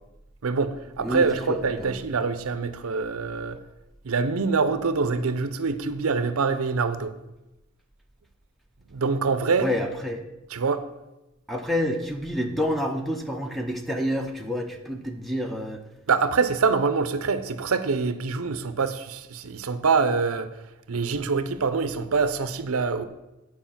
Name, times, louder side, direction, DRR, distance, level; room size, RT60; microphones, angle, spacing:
voice 1, 0.4-3.6 4.0-7.2 8.9-9.7 10.5-10.8 16.1-20.5 20.9-23.0, right 4 dB, 70° right, 12 dB, 0.6 m, -25 dB
voice 2, 1.0-2.0 9.6-10.2 11.5-15.8, equal, ahead, 4 dB, 0.7 m, -28 dB
9.2 x 4.8 x 7.2 m, 0.99 s
head